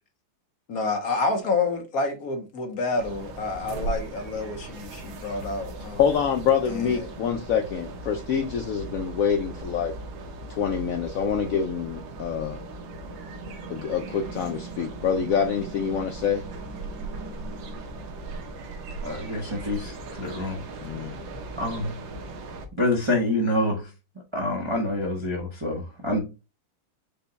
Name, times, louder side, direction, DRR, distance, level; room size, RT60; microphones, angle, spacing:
voice 1, 0.7-6.0 6.7-7.1, left 3 dB, 55° left, 1.1 m, -28 dB
sound 1, 3.0-22.7, right 2 dB, 75° right, 1.5 m, -38 dB
voice 2, 6.0-9.9 10.5-12.6 13.7-16.4 20.8-21.2, left 7 dB, 80° left, 0.7 m, -26 dB
voice 3, 19.0-20.6 21.6-21.9 22.8-23.9 24.3-26.2, left 1 dB, 25° right, 0.6 m, -27 dB
5.4 x 2.2 x 3.9 m
omnidirectional pair, 2.1 m